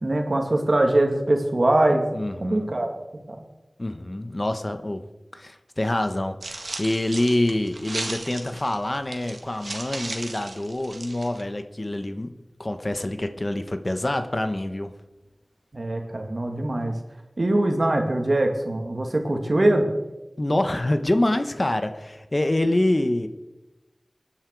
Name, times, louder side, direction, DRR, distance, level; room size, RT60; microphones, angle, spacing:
voice 1, 0.0-2.1 2.4-2.9 3.3-3.4 15.7-16.9 17.4-19.9, right 1 dB, 55° right, 3 dB, 2.4 m, -22 dB
voice 2, 2.1-2.7 3.8-5.0 5.3-12.3 12.6-14.9 20.4-23.3, left 1 dB, 40° left, 8 dB, 1.2 m, -26 dB
sound 1, 6.4-11.4, right 2 dB, 75° right, 1.7 m, -36 dB
24.0 x 10.0 x 4.8 m, 1.1 s
wide cardioid pair, 60°, 0 cm